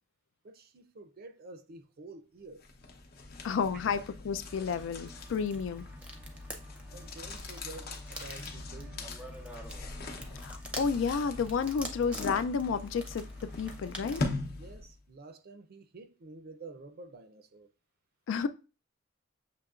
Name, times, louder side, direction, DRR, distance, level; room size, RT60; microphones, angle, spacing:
voice 1, 0.4-2.6 6.9-9.1 14.6-17.7, right 3 dB, 50° right, 0.5 m, -49 dB
sound 1, 2.6-15.0, left 2 dB, 50° left, 0.7 m, -41 dB
voice 2, 3.4-5.9 10.4-13.3 13.6-14.2 18.3-18.5, left 6 dB, 70° left, 0.3 m, -31 dB
sound 2, 4.5-14.3, right 1 dB, 5° right, 0.6 m, -47 dB
6.7 x 2.9 x 2.4 m
head